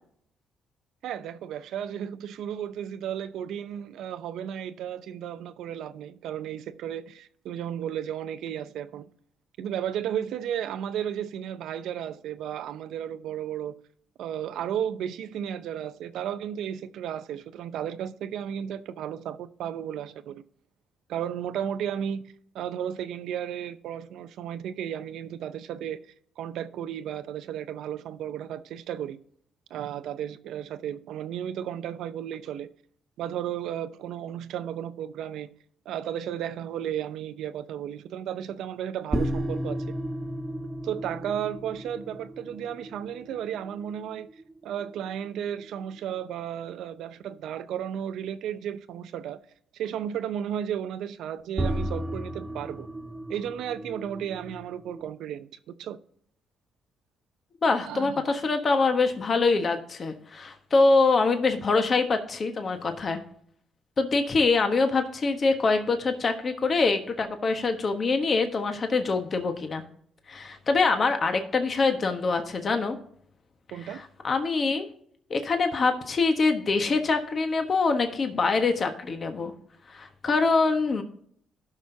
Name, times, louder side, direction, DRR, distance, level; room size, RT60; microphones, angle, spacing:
voice 1, 1.0-9.0 9.6-13.8 14.2-20.4 21.1-22.2 22.5-26.0 26.4-29.2 29.7-32.7 33.2-35.5 35.9-39.8 40.8-44.3 44.6-49.4 49.7-52.9 53.3-56.0 57.8-58.2 73.7-74.0, right 9 dB, 80° right, 0.7 m, -34 dB
sound 1, 39.1-45.8 51.6-55.1, right 1 dB, 20° right, 1.4 m, -34 dB
voice 2, 57.6-63.2 64.0-69.8 70.3-73.0 73.9-74.8 75.3-79.5 79.9-81.0, left 3 dB, 45° left, 1.3 m, -24 dB
16.0 x 6.1 x 2.8 m
cardioid pair, 85°, 0 cm